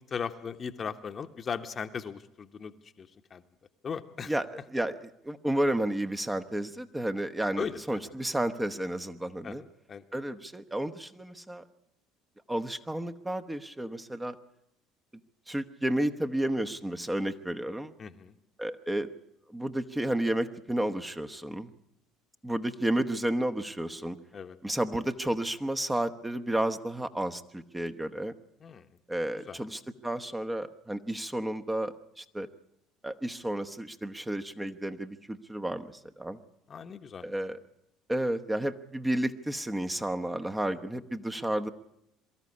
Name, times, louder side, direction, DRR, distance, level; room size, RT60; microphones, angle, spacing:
voice 1, 0.1-3.4 3.8-4.3 7.6-8.0 9.4-9.6 9.9-10.0 18.0-18.3 24.3-24.6 28.6-28.9 29.3-29.6 36.7-37.2, left 6 dB, 40° left, 8 dB, 1.2 m, -38 dB
voice 2, 5.2-9.6 10.1-11.6 12.5-14.4 15.5-17.9 18.6-19.1 19.5-21.7 22.4-24.2 24.6-28.3 29.1-32.5 33.0-36.4 37.2-37.6 38.1-41.7, right 1 dB, 10° right, 8 dB, 1.2 m, -31 dB
23.0 x 13.5 x 9.8 m, 0.81 s
hypercardioid pair, 65°, 0 cm